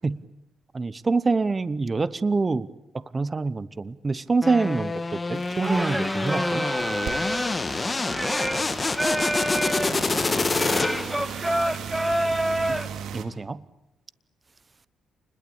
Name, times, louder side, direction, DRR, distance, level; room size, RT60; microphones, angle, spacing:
voice 1, 0.7-2.7 3.1-6.7 13.1-13.7, right 3 dB, 25° right, 0.9 m, -25 dB
sound 1, 4.4-11.3, left 3 dB, 25° left, 1.5 m, -27 dB
sound 2, 5.3-13.2, right 8 dB, 70° right, 2.9 m, -38 dB
Singing, 5.6-12.9, right 1 dB, 5° right, 1.2 m, -28 dB
28.5 x 21.0 x 8.6 m
cardioid pair, 90°, 0 cm